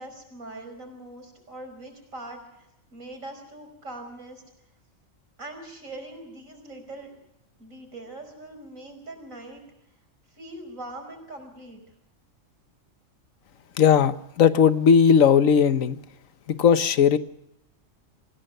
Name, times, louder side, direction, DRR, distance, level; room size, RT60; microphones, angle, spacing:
voice 1, 0.0-2.7 2.9-4.4 5.4-7.1 7.6-9.6 10.3-11.8, right 2 dB, 80° right, 5.5 m, -41 dB
voice 2, 13.8-16.0 16.5-17.2, left 7 dB, 80° left, 1.4 m, -18 dB
26.0 x 16.5 x 6.6 m
omnidirectional pair, 1.4 m